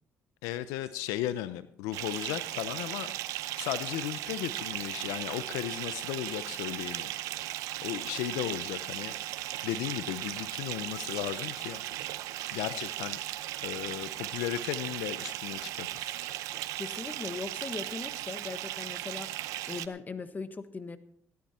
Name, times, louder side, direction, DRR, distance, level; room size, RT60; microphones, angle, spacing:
voice 1, 0.4-3.1 3.6-7.1 7.8-9.1 9.6-11.8 12.5-13.2 13.6-16.1, left 13 dB, 90° left, 13 dB, 0.7 m, -35 dB
sound 1, 0.8-1.0 2.1-2.2 3.0-3.2 3.6-3.7 4.1-4.3 4.7-4.8 5.1-5.2 5.9-6.0 6.5-7.1 7.5-7.9 8.2-8.3 8.5-9.9 10.1-10.2 10.5-10.6 11.1-11.3 11.8-12.5 12.9-13.3 13.8-15.4 16.0-16.6 16.9-18.8 19.1-19.2, right 2 dB, 10° right, 5.1 m, -60 dB
Bathtub (filling or washing) / Fill (with liquid), 1.9-19.9, right 15 dB, 85° right, 0.7 m, -37 dB
voice 2, 16.7-19.3 19.7-21.0, left 4 dB, 30° left, 10 dB, 1.5 m, -39 dB
16.5 x 12.0 x 4.3 m, 0.63 s
supercardioid pair, 70°, 6 cm